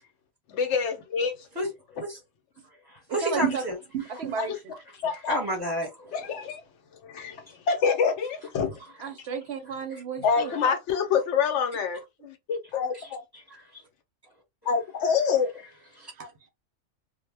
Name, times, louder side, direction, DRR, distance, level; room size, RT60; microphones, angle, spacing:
voice 1, 0.5-1.3 4.4-4.6 5.0-5.4 6.1-6.6 7.0-8.8 10.2-13.2 14.7-15.5, left 6 dB, 70° left, 0.9 m, -26 dB
voice 2, 1.5-2.2 2.9-3.8 5.3-6.4 9.9-10.0 12.9-13.8 15.9-16.1, equal, 20° right, 0.8 m, -32 dB
voice 3, 3.2-3.6 3.9-4.5 9.0-10.5 16.2-16.5, right 7 dB, 65° right, 0.7 m, -32 dB
2.1 x 2.0 x 3.3 m
omnidirectional pair, 1.3 m